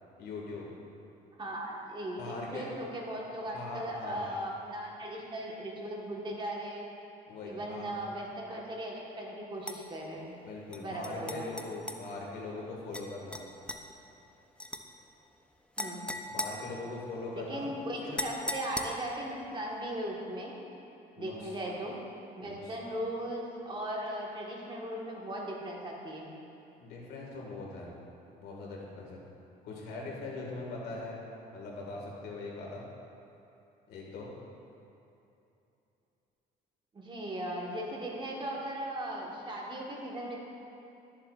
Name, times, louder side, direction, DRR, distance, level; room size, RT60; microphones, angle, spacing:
voice 1, 0.2-0.7 2.2-2.7 3.4-4.2 7.3-8.0 10.5-13.4 16.3-17.7 18.0-18.2 21.2-21.6 22.4-22.7 26.8-27.9 28.4-29.2 29.6-31.2 31.5-32.9 33.9-34.3, left 3 dB, 75° left, -3 dB, 1.8 m, -41 dB
voice 2, 1.4-6.9 7.4-10.4 10.7-11.4 15.8-16.1 17.3-20.5 21.2-22.0 22.4-26.3 36.9-40.4, right 1 dB, 30° right, -2 dB, 1.4 m, -38 dB
sound 1, 9.6-9.8 10.7-12.0 12.9-13.1 13.3-13.8 14.6-14.8 15.8-17.3 18.2-19.2, left 1 dB, 5° left, 0.4 m, -38 dB
12.0 x 7.2 x 2.4 m, 2.8 s
cardioid pair, 110°, 17 cm